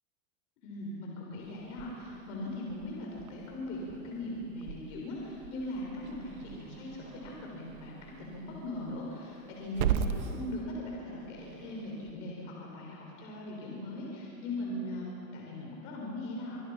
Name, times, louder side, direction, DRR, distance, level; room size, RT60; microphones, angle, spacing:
voice 1, 0.6-16.6, left 1 dB, 55° left, -3 dB, 6.7 m, -40 dB
Growling / Hiss, 1.4-12.1, right 8 dB, 80° right, 1.7 m, -39 dB
27.0 x 24.0 x 6.0 m, 3.0 s
supercardioid pair, 140°, 43 cm